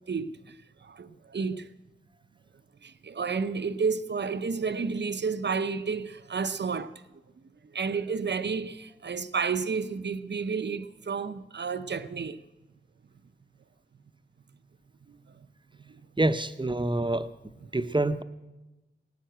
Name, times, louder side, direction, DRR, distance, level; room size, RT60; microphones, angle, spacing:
voice 1, 0.8-1.7 2.8-6.9 7.7-12.4, right 5 dB, 65° right, 0.6 m, -31 dB
voice 2, 16.2-17.3 17.7-18.2, right 2 dB, 25° right, 0.7 m, -26 dB
18.0 x 10.0 x 7.8 m
wide cardioid pair, 50°, 19 cm